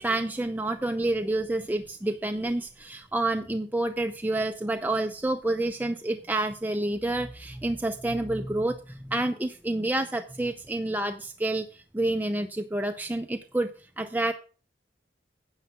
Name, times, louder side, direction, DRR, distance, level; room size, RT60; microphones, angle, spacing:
voice 1, 0.0-13.7 14.0-14.3, right 2 dB, 10° right, 6 dB, 0.5 m, -28 dB
9.7 x 7.1 x 5.7 m, 0.36 s
head